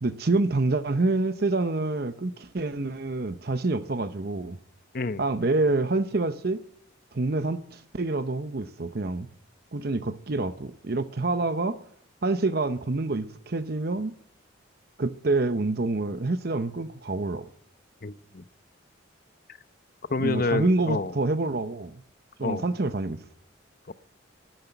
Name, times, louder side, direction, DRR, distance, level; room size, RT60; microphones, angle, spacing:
voice 1, 0.0-4.6 5.2-6.6 7.1-9.3 9.7-11.8 12.2-14.1 15.0-17.4 20.2-22.0 22.4-23.2, right 2 dB, 50° right, 0.8 m, -27 dB
voice 2, 18.0-18.4 20.1-21.1 22.4-22.6 23.9-24.0, left 3 dB, 45° left, 0.8 m, -28 dB
13.0 x 12.0 x 9.0 m
head